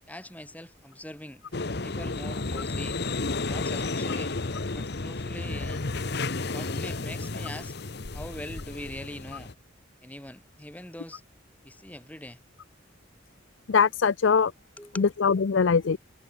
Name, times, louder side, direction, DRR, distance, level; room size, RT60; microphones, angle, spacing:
voice 1, 0.1-3.0 3.5-4.3 4.7-5.8 6.5-7.7 8.1-9.5 10.0-11.2 11.6-12.4 14.8-15.1, left 1 dB, 10° left, 2.8 m, -42 dB
sound 1, 1.5-9.5, left 3 dB, 55° left, 1.1 m, -32 dB
voice 2, 13.7-14.5 15.0-16.0, left 5 dB, 70° left, 0.5 m, -22 dB
head